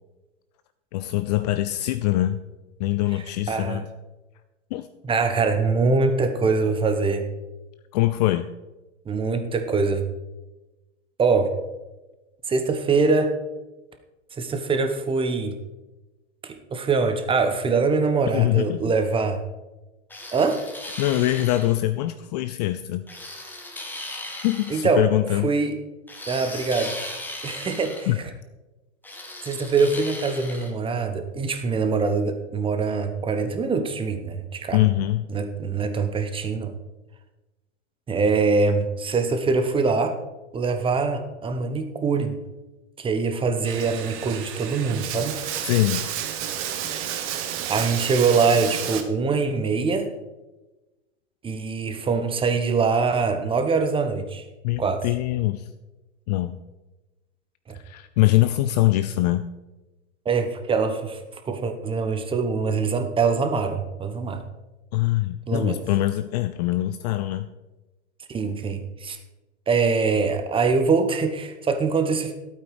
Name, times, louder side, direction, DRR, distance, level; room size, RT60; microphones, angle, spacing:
voice 1, 0.9-2.4 2.8-3.9 4.7-4.9 7.9-8.5 18.3-18.8 21.0-23.1 24.4-25.5 28.1-28.2 34.7-35.3 45.6-46.0 54.6-55.7 56.3-56.6 57.7-59.5 64.9-67.5, left 16 dB, 35° left, 12 dB, 0.4 m, -23 dB
voice 2, 3.5-3.8 5.0-7.3 9.1-10.0 11.2-11.5 12.5-13.3 14.4-15.6 16.4-19.4 20.3-20.6 24.7-25.0 25.4-25.8 26.3-26.9 27.4-28.1 29.5-34.8 35.3-36.8 38.1-40.2 40.5-42.4 43.0-45.4 46.9-47.4 47.7-50.1 51.4-54.4 54.8-55.0 57.7-57.8 60.2-61.2 61.5-64.4 65.5-65.8 68.3-69.2 69.7-72.3, right 4 dB, 15° right, 7 dB, 1.0 m, -23 dB
sound 1, 20.1-21.7 23.1-24.8 26.1-28.1 29.0-30.7, left 1 dB, 5° left, 1.6 m, -37 dB
Bathtub (filling or washing), 43.6-49.0, right 9 dB, 35° right, 1.3 m, -31 dB
12.0 x 8.7 x 4.9 m, 1.1 s
hypercardioid pair, 115°, 37 cm